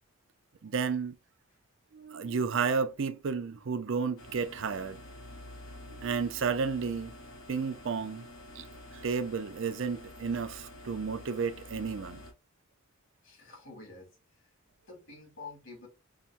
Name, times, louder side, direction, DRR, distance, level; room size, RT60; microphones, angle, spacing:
voice 1, 0.6-1.2 1.9-5.0 5.9-7.1 7.5-8.3 8.6-8.7 8.9-12.2, right 5 dB, 60° right, 0.5 m, -32 dB
sound 1, 4.2-12.3, left 1 dB, 80° left, 1.2 m, -48 dB
voice 2, 13.2-14.1 14.4-14.5 14.9-15.9, left 3 dB, 60° left, 2.0 m, -48 dB
5.7 x 2.1 x 2.5 m
head